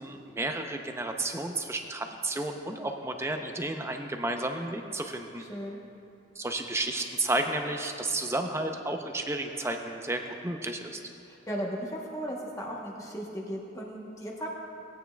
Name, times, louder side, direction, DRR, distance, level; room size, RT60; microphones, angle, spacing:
voice 1, 0.0-5.4 6.4-11.0, right 2 dB, 15° right, 5 dB, 0.5 m, -32 dB
voice 2, 5.5-5.8 11.3-14.5, equal, 15° left, -2 dB, 0.9 m, -36 dB
17.5 x 9.1 x 2.2 m, 2.7 s
head